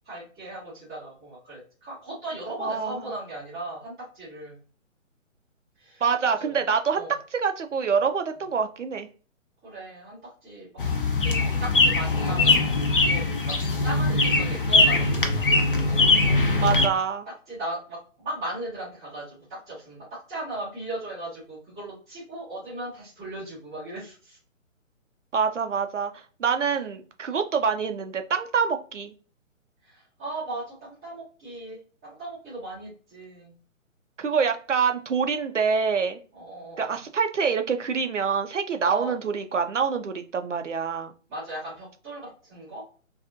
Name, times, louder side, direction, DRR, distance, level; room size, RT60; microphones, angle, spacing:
voice 1, 0.0-4.6 5.8-6.6 6.9-7.1 9.6-10.7 10.9-13.6 13.8-15.7 16.5-16.7 17.3-24.4 26.7-26.8 29.8-31.8 32.0-33.5 36.3-37.0 38.8-39.1 41.3-42.8, right 1 dB, 5° right, -13 dB, 0.6 m, -37 dB
voice 2, 2.6-3.0 6.0-7.0 7.3-9.1 16.6-17.3 25.3-26.1 26.4-29.1 34.2-36.2 36.8-41.1, right 6 dB, 65° right, 7 dB, 0.5 m, -26 dB
sound 1, 10.8-16.9, left 3 dB, 45° left, 0.5 m, -21 dB
2.5 x 2.3 x 2.5 m, 0.38 s
figure-of-eight pair, 135°, 40 cm